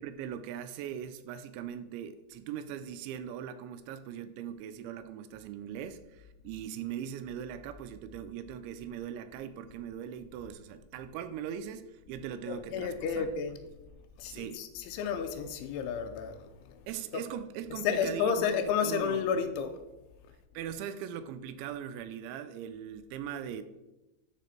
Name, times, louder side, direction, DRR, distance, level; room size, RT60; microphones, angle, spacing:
voice 1, 0.0-13.3 14.3-14.6 16.9-18.5 18.8-19.2 20.5-23.6, right 9 dB, 85° right, 2.8 m, -40 dB
voice 2, 12.5-13.6 14.2-17.2 17.7-19.8, left 7 dB, 85° left, 3.2 m, -32 dB
13.0 x 5.0 x 4.3 m
omnidirectional pair, 5.4 m